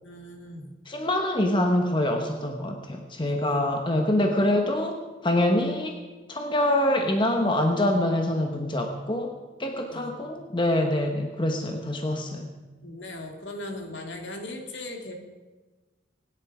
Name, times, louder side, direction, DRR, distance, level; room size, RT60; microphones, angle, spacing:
voice 1, 0.0-0.7 3.2-3.7 9.9-10.5 12.8-15.1, left 1 dB, 70° left, 3 dB, 2.5 m, -39 dB
voice 2, 0.9-6.0 6.3-12.5, left 1 dB, 25° left, 4 dB, 1.1 m, -25 dB
24.0 x 10.5 x 5.0 m, 1.2 s
head